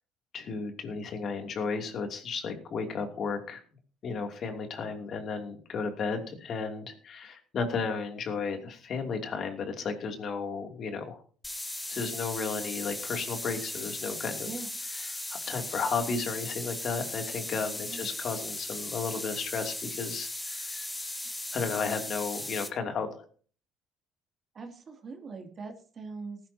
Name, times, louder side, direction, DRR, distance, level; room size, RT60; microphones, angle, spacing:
voice 1, 0.3-3.6 4.0-11.2 11.9-14.5 14.9-20.9 21.5-23.2, left 5 dB, 55° left, 5 dB, 2.8 m, -34 dB
sound 1, 11.4-22.7, left 2 dB, 15° left, 2.2 m, -37 dB
voice 2, 24.5-26.4, right 4 dB, 45° right, 4 dB, 2.7 m, -41 dB
19.0 x 11.0 x 2.9 m, 0.42 s
hypercardioid pair, 65°, 0 cm